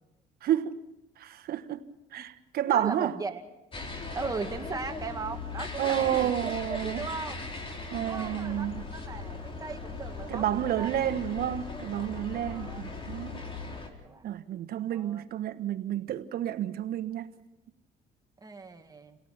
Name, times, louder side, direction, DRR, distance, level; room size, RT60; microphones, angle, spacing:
voice 1, 0.4-0.8 1.2-1.8 2.1-3.1 5.8-7.1 7.9-8.8 10.3-13.4 14.2-17.3, right 11 dB, 65° right, 1.3 m, -30 dB
voice 2, 2.7-3.4 4.1-7.3 8.0-8.7 8.9-11.0 12.3-13.1 14.0-14.4 14.9-15.2 18.4-19.2, right 4 dB, 20° right, 2.1 m, -38 dB
sound 1, 3.7-13.9, left 3 dB, 30° left, 3.8 m, -38 dB
29.0 x 18.0 x 5.9 m
cardioid pair, 110°, 17 cm